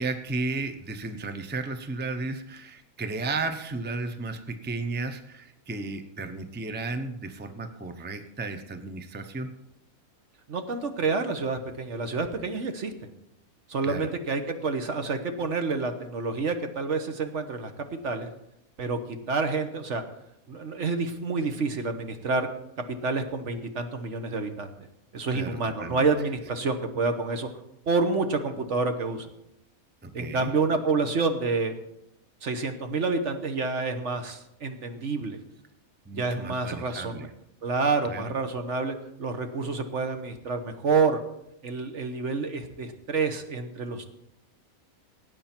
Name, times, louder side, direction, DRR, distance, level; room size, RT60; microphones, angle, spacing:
voice 1, 0.0-9.5 13.8-14.1 25.3-26.1 30.0-30.5 36.1-37.3 38.0-38.3, right 3 dB, 10° right, 8 dB, 0.7 m, -34 dB
voice 2, 10.5-12.9 13.7-18.3 18.8-19.0 19.3-20.0 20.5-22.5 23.0-24.7 25.1-27.5 27.9-29.3 30.1-31.7 32.4-35.4 36.1-37.3 37.6-41.2 41.6-44.0, right 4 dB, 55° right, 7 dB, 1.3 m, -28 dB
18.5 x 8.9 x 4.4 m, 0.85 s
omnidirectional pair, 1.5 m